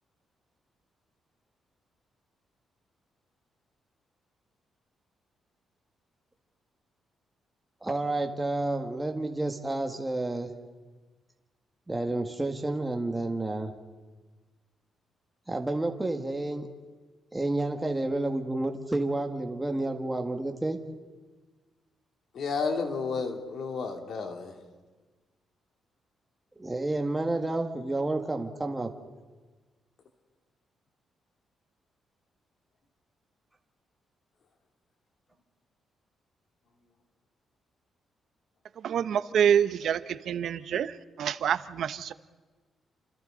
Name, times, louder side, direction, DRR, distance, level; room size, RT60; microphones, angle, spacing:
voice 1, 7.8-10.5 11.9-13.7 15.5-16.7 17.3-20.8 26.6-28.9, right 2 dB, 15° right, 1.7 m, -30 dB
voice 2, 22.3-24.5, left 4 dB, 65° left, 2.9 m, -31 dB
voice 3, 38.8-40.9 41.2-42.1, right 8 dB, 70° right, 0.8 m, -26 dB
29.5 x 27.5 x 3.9 m
cardioid pair, 115°, 0 cm